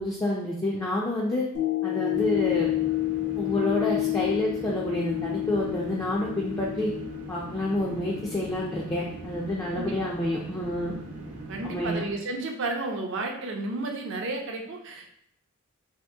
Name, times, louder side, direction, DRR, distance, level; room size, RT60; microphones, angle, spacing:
voice 1, 0.0-1.4 1.8-2.7 3.4-6.9 7.3-10.9 11.6-12.0, left 1 dB, 15° left, -5 dB, 0.4 m, -28 dB
sound 1, 1.5-9.9 10.4-10.5, left 18 dB, 80° left, 0.9 m, -30 dB
sound 2, 2.1-12.0, right 1 dB, 90° right, 0.8 m, -41 dB
voice 2, 11.5-15.1, right 2 dB, 55° right, 3 dB, 0.5 m, -32 dB
2.8 x 2.5 x 3.5 m, 0.71 s
head